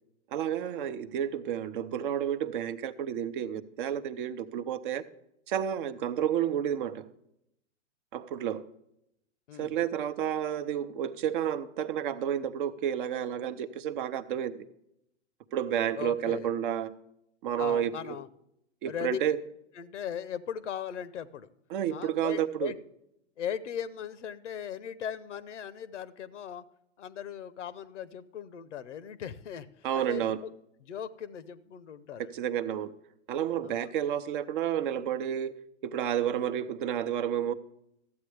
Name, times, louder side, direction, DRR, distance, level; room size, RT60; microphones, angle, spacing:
voice 1, 0.3-5.0 5.5-7.1 8.1-8.6 9.6-14.6 15.5-16.9 17.4-17.9 18.8-19.4 21.7-22.7 29.8-30.4 32.3-32.9 33.3-35.5 35.8-37.5, right 10 dB, 45° right, 11 dB, 0.7 m, -30 dB
voice 2, 9.5-9.8 16.0-16.5 17.6-18.3 18.9-19.2 19.7-21.5 21.9-22.8 23.4-26.6 27.0-30.5 30.8-32.3 33.6-33.9, left 9 dB, 85° left, 17 dB, 0.8 m, -38 dB
13.5 x 8.4 x 3.3 m, 0.78 s
hypercardioid pair, 135°, 35 cm